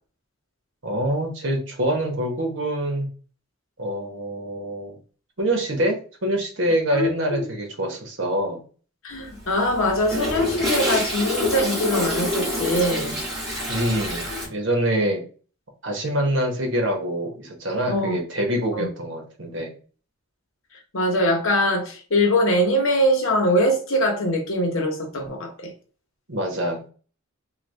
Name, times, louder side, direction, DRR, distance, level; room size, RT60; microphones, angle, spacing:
voice 1, 0.8-3.1 3.8-5.0 5.4-8.6 13.7-15.2 15.8-19.7 26.3-26.9, right 1 dB, 65° right, 1.1 m, -25 dB
voice 2, 6.9-7.5 9.0-13.2 17.9-18.2 18.7-18.9 20.9-25.7, equal, 80° left, 0.9 m, -22 dB
Toilet flush, 9.2-14.5, left 1 dB, ahead, 1.4 m, -27 dB
3.3 x 2.3 x 3.2 m
head